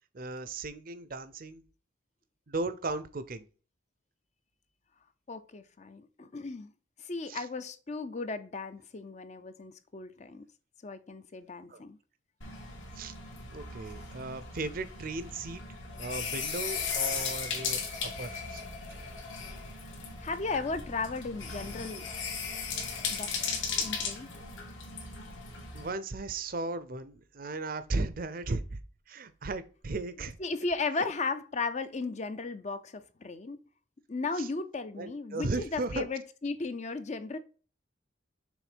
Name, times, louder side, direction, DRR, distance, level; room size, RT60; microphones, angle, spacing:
voice 1, 0.1-1.6 2.5-3.5 7.3-7.4 11.7-11.8 13.0-13.1 13.5-15.6 16.0-18.6 25.7-28.8 29.1-30.4 31.0-31.1 34.4-34.5 35.0-36.1, right 3 dB, 45° right, 0.6 m, -36 dB
voice 2, 5.3-6.7 7.0-10.4 10.8-12.0 20.2-22.1 23.1-23.3 23.8-24.3 30.4-33.6 34.1-37.4, left 3 dB, 35° left, 0.5 m, -35 dB
sound 1, 12.4-25.9, left 5 dB, 75° left, 2.1 m, -37 dB
6.3 x 3.7 x 5.0 m
head